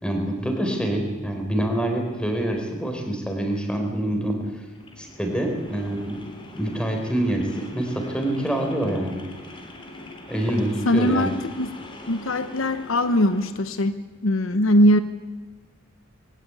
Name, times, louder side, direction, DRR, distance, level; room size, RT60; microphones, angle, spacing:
voice 1, 0.0-4.6 5.0-6.2 6.5-9.3 10.3-11.3, right 1 dB, 5° left, 2 dB, 4.2 m, -26 dB
sound 1, 4.7-13.6, left 1 dB, 25° left, 3.3 m, -42 dB
voice 2, 10.9-11.3 11.6-11.7 12.1-15.0, equal, 65° left, 11 dB, 0.9 m, -20 dB
22.5 x 16.5 x 9.8 m, 1.3 s
head